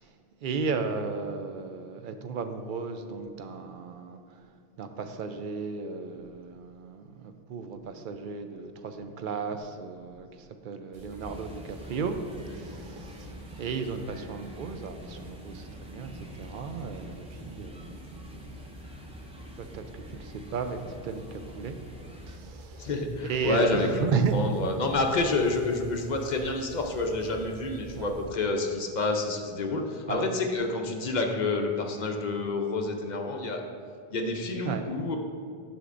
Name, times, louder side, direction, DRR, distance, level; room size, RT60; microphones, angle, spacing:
voice 1, 0.4-4.5 4.8-12.2 12.5-18.5 19.6-21.8 22.3-22.9 23.2-24.4 27.2-27.3 27.9-28.1 30.1-30.3 34.7-34.9, right 5 dB, 60° right, 7 dB, 0.6 m, -34 dB
sound 1, 10.9-28.2, equal, 80° right, 1.8 m, -47 dB
sound 2, 11.2-22.4, equal, 10° right, 0.3 m, -47 dB
voice 2, 22.8-33.6 34.1-35.2, left 3 dB, 50° left, 3 dB, 0.7 m, -28 dB
9.8 x 6.0 x 2.5 m, 2.2 s
omnidirectional pair, 1.0 m